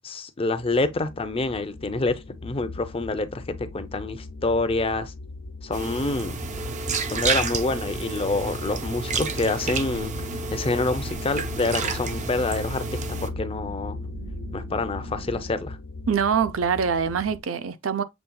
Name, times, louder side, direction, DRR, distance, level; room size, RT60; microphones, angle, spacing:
voice 1, 0.0-5.1 5.6-6.4 7.1-10.1 10.5-14.0 14.5-15.8, left 3 dB, 30° left, 0.5 m, -27 dB
sound 1, 0.6-17.4, left 3 dB, 80° left, 0.9 m, -38 dB
sound 2, 5.7-13.3, right 5 dB, 40° right, 0.5 m, -30 dB
sound 3, 9.0-15.5, right 2 dB, 65° right, 1.7 m, -42 dB
voice 2, 16.1-18.0, right 6 dB, 85° right, 0.6 m, -24 dB
7.0 x 3.3 x 2.3 m
head